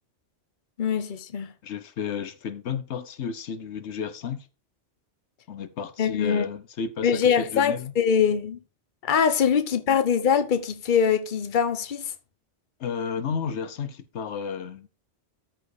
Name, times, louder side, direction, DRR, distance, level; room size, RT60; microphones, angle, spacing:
voice 1, 0.8-1.5 6.0-6.4 7.0-8.6 9.0-12.1, left 7 dB, 50° left, 1.0 m, -23 dB
voice 2, 1.6-4.5 5.5-7.9 12.8-14.9, left 6 dB, 80° left, 1.1 m, -32 dB
13.5 x 4.5 x 4.8 m
omnidirectional pair, 1.2 m